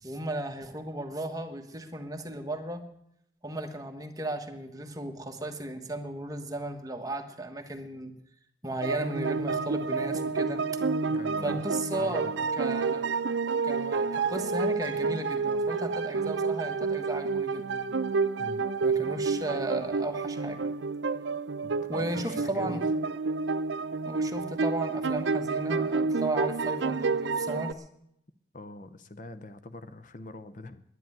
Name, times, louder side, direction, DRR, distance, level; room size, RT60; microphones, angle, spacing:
voice 1, 0.0-2.8 3.4-8.1 8.6-10.6 11.4-12.3 12.6-13.1 13.6-17.8 18.8-20.7 21.9-22.9 24.0-27.8, right 1 dB, 20° right, 5 dB, 1.3 m, -35 dB
sound 1, 8.8-27.7, right 4 dB, 80° right, 0.6 m, -29 dB
voice 2, 11.1-11.6 11.9-12.5 18.4-18.7 21.6-22.8 28.5-30.8, left 2 dB, 45° left, 11 dB, 0.7 m, -44 dB
10.5 x 10.5 x 9.0 m, 0.77 s
head